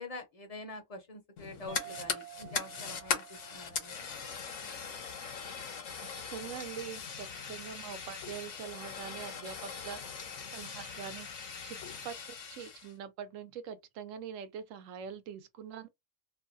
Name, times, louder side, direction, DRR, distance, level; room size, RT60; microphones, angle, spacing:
voice 1, 0.0-4.0, left 2 dB, 40° left, 0.6 m, -45 dB
Fire, 1.4-12.9, left 6 dB, 70° left, 1.1 m, -40 dB
sound 1, 1.7-6.6, right 15 dB, 50° right, 0.8 m, -52 dB
voice 2, 6.0-10.0 10.5-11.4 11.6-11.8 12.0-12.2 12.5-15.9, right 8 dB, 75° right, 0.9 m, -43 dB
2.6 x 2.2 x 2.5 m
omnidirectional pair, 1.4 m